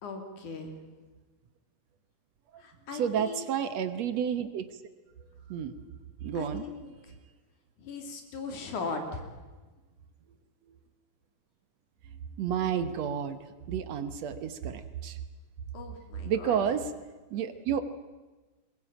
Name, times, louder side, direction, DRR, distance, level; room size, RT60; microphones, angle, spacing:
voice 1, 0.0-0.7 2.6-3.4 6.3-7.2 7.8-9.3 15.7-16.6, left 4 dB, 80° left, 4 dB, 4.3 m, -39 dB
voice 2, 2.9-4.7 5.5-5.7 6.2-6.7 12.4-13.4 13.7-15.2 16.3-16.9 17.3-17.8, right 8 dB, 65° right, 11 dB, 2.2 m, -30 dB
21.5 x 21.5 x 8.9 m, 1.2 s
omnidirectional pair, 3.4 m